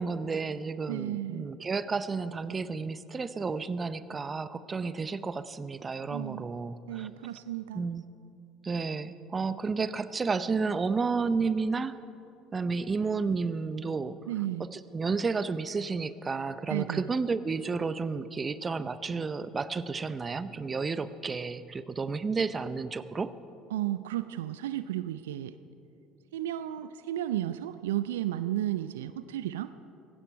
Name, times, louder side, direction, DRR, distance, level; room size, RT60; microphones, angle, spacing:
voice 1, 0.0-7.1 7.7-8.0 8.6-12.0 12.5-14.2 14.7-23.3, right 4 dB, 25° right, 14 dB, 0.7 m, -31 dB
voice 2, 0.9-1.5 6.1-6.5 6.9-8.0 14.3-14.7 16.7-17.1 23.7-25.5 26.3-29.7, right 13 dB, 75° right, 13 dB, 0.4 m, -33 dB
18.5 x 16.0 x 4.7 m, 2.7 s
hypercardioid pair, 65°, 0 cm